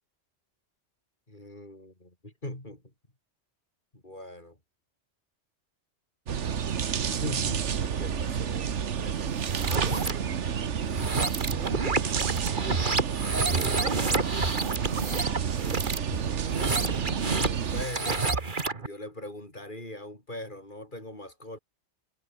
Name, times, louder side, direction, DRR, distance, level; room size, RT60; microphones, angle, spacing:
voice 1, 1.3-2.8 3.9-4.6 7.1-10.7 13.8-14.8 17.3-18.4 18.8-21.6, left 1 dB, 45° left, 5.9 m, -42 dB
sound 1, 6.3-17.9, right 7 dB, 90° right, 1.5 m, -30 dB
sound 2, 9.4-10.1 10.8-18.9, right 3 dB, 45° right, 2.1 m, -29 dB
omnidirectional pair, 1.2 m